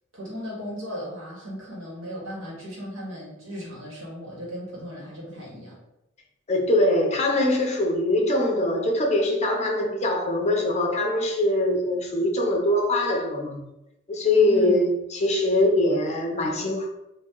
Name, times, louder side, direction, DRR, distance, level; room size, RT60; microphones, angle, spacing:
voice 1, 0.1-5.8 14.5-14.8, equal, 80° right, -4 dB, 1.4 m, -36 dB
voice 2, 6.5-13.6 14.1-16.9, left 1 dB, 35° left, 1 dB, 0.6 m, -22 dB
2.8 x 2.6 x 3.7 m, 0.88 s
head